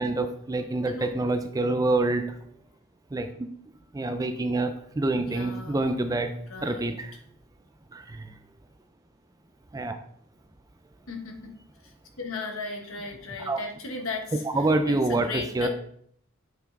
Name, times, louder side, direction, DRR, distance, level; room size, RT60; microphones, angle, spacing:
voice 1, 0.0-2.2 3.1-3.3 3.9-6.3 6.6-7.1 7.9-8.0 9.7-10.0 13.5-13.6 14.5-15.3 15.6-15.7, right 2 dB, 15° right, 8 dB, 0.3 m, -26 dB
voice 2, 0.9-1.2 5.1-6.0 6.5-6.9 11.1-11.5 12.2-15.7, left 3 dB, 75° left, 3 dB, 1.3 m, -37 dB
7.8 x 4.7 x 3.3 m, 0.66 s
head